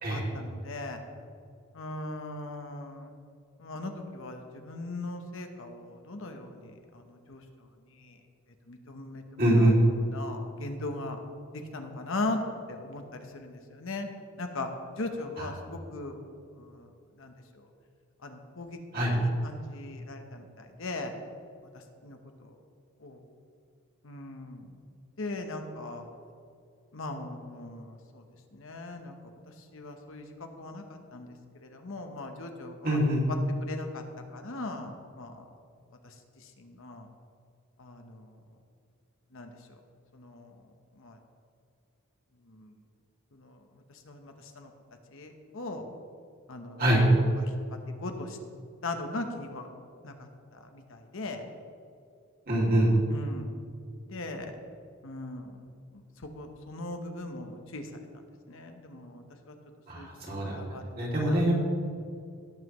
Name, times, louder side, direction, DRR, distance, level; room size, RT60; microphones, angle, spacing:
voice 1, 0.1-1.0 1.7-3.1 3.6-7.4 8.0-8.2 8.7-11.2 11.7-12.4 12.7-14.1 14.4-14.7 15.0-16.2 16.6-16.9 17.2-17.3 18.2-18.8 19.2-21.1 22.0-22.2 22.4-22.5 23.0-23.2 24.0-24.7 25.2-26.1 26.9-28.2 28.5-29.1 29.7-30.3 30.6-31.3 31.6-33.0 33.7-34.0 34.3-35.4 36.6-37.1 37.8-38.3 39.3-39.5 40.1-40.5 41.0-41.2 42.5-42.7 43.3-43.6 44.1-44.7 45.1-45.8 46.5-46.8 47.4-47.5 48.0-48.4 48.8-49.7 50.0-51.4 53.1-53.5 54.1-54.6 55.0-55.6 56.4-57.9 58.5-59.5 60.0-61.4, left 2 dB, 65° left, 5 dB, 1.0 m, -39 dB
voice 2, 9.4-9.8 15.4-15.5 18.9-19.1 32.8-33.2 46.8-47.0 52.5-52.9 59.9-61.6, right 1 dB, 45° right, -4 dB, 2.8 m, -24 dB
17.5 x 7.5 x 3.1 m, 2.4 s
head